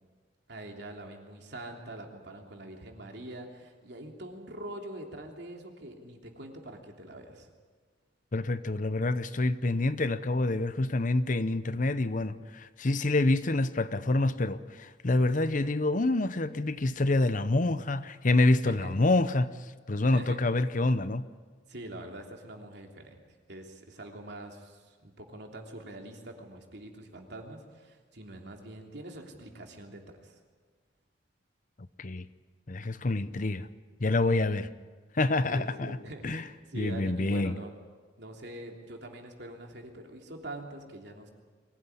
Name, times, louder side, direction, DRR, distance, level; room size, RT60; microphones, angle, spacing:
voice 1, 0.5-7.5 18.6-18.9 20.1-20.4 21.7-23.2 23.5-30.3 34.6-34.7 35.4-36.4 36.7-37.7 38.2-41.3, right 1 dB, 65° right, 3.2 m, -44 dB
voice 2, 8.3-19.5 19.9-21.3 32.0-32.3 32.7-33.7 34.0-34.7 35.1-36.0 36.2-36.4 36.7-37.6, left 2 dB, 45° left, 0.8 m, -27 dB
23.5 x 17.0 x 9.8 m
head